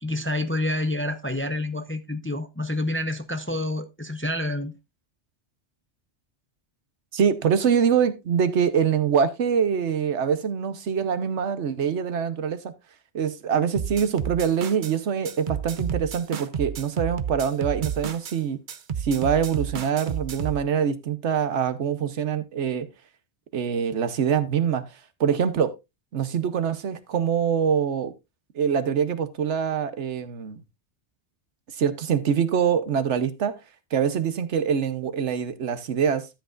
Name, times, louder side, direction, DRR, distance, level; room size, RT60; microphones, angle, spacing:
voice 1, 0.0-4.7, left 1 dB, 15° left, 0.6 m, -28 dB
voice 2, 7.1-12.7 13.1-18.6 19.0-22.9 23.5-24.8 25.2-25.8 26.1-28.1 28.5-30.6 31.7-33.6 33.9-36.3, right 7 dB, 85° right, 1.2 m, -24 dB
sound 1, 13.8-14.9 15.3-18.4 18.7-20.6, right 7 dB, 50° right, 0.8 m, -31 dB
13.0 x 7.9 x 2.5 m
omnidirectional pair, 1.2 m